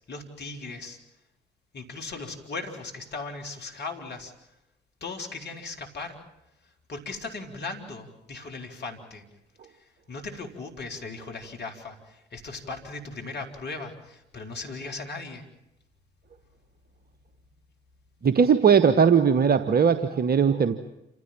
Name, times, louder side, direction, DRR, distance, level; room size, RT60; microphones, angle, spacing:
voice 1, 0.1-1.0 1.7-4.3 5.0-6.2 6.9-9.2 10.1-15.4, left 3 dB, 55° left, 3 dB, 3.9 m, -37 dB
voice 2, 18.2-20.7, right 6 dB, 50° right, 12 dB, 1.3 m, -19 dB
28.0 x 16.0 x 8.8 m, 0.87 s
hypercardioid pair, 40°, 20 cm